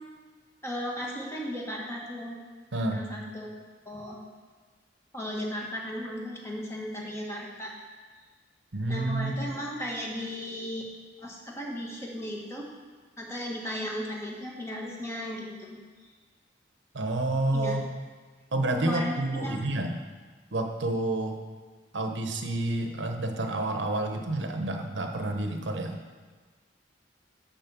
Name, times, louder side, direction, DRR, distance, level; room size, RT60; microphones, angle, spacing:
voice 1, 0.6-2.4 2.9-3.5 3.8-4.2 5.1-7.7 8.9-10.9 11.2-12.7 13.2-15.8 17.5-17.7 18.8-19.6, equal, 15° left, -2 dB, 1.7 m, -35 dB
voice 2, 2.7-3.0 8.7-9.4 16.9-17.8 18.5-19.9 20.5-21.4 21.9-26.0, right 2 dB, 85° right, 4 dB, 1.0 m, -29 dB
12.0 x 4.3 x 7.0 m, 1.4 s
head